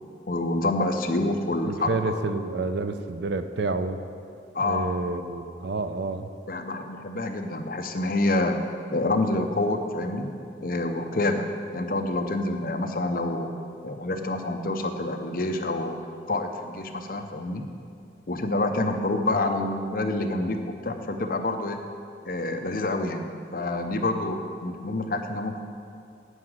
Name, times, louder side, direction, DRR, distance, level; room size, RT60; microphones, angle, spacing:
voice 1, 0.3-2.2 4.5-4.9 6.5-10.3 10.6-13.5 13.8-16.0 16.3-17.7 18.3-21.8 22.2-25.6, left 2 dB, 50° left, 5 dB, 0.7 m, -27 dB
voice 2, 1.6-4.0 4.6-6.3, right 3 dB, 75° right, 10 dB, 0.5 m, -29 dB
9.8 x 4.9 x 7.8 m, 2.5 s
head